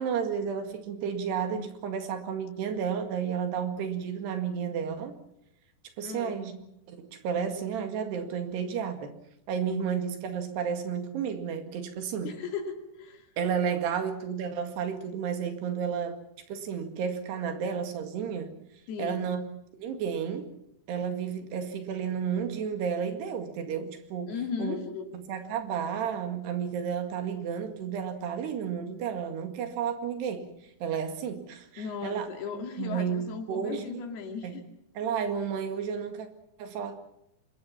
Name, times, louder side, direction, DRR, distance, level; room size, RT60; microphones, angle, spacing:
voice 1, 0.0-5.1 6.0-6.5 6.9-9.1 9.5-12.3 13.4-16.2 16.5-18.5 19.0-19.4 19.7-20.5 20.9-24.3 24.6-24.8 25.1-30.5 30.8-32.3 32.8-33.2 33.5-34.0 34.4-34.5 35.0-36.3 36.6-37.0, right 7 dB, 80° right, 7 dB, 4.2 m, -32 dB
voice 2, 6.0-6.5 12.2-13.3 18.9-19.3 24.3-25.2 31.8-34.6, left 6 dB, 70° left, 5 dB, 4.3 m, -36 dB
25.5 x 21.5 x 5.8 m, 0.82 s
omnidirectional pair, 4.7 m